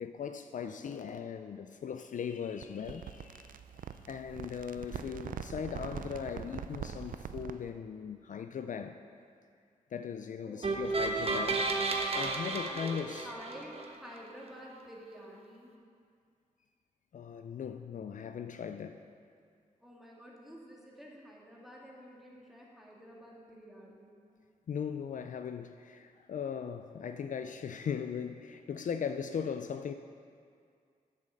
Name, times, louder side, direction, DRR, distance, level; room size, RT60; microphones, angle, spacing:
voice 1, 0.0-3.5 3.8-9.0 9.9-11.6 12.1-13.2 17.1-19.0 24.7-29.9, left 7 dB, 65° left, 0.4 m, -39 dB
sound 1, 2.6-7.7, right 8 dB, 75° right, 0.4 m, -43 dB
voice 2, 10.4-11.0 12.1-13.0 13.2-15.7 19.8-24.2, equal, ahead, 2.5 m, -49 dB
sound 2, 10.6-13.9, right 3 dB, 45° right, 1.1 m, -32 dB
8.3 x 7.4 x 6.5 m
cardioid pair, 70°, 14 cm